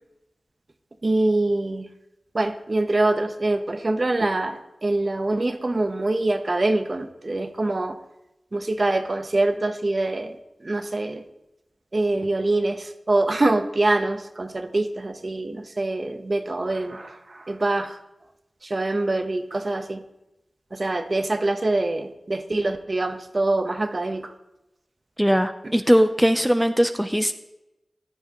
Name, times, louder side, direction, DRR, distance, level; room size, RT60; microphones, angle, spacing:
voice 1, 1.0-1.9 2.3-8.0 8.5-10.4 10.6-11.2 11.9-18.0 18.6-20.0 20.7-24.3, right 2 dB, 45° right, 7 dB, 1.0 m, -24 dB
voice 2, 25.2-27.3, equal, 5° right, 8 dB, 0.6 m, -20 dB
14.5 x 10.5 x 3.0 m, 0.91 s
wide cardioid pair, 55°, 0 cm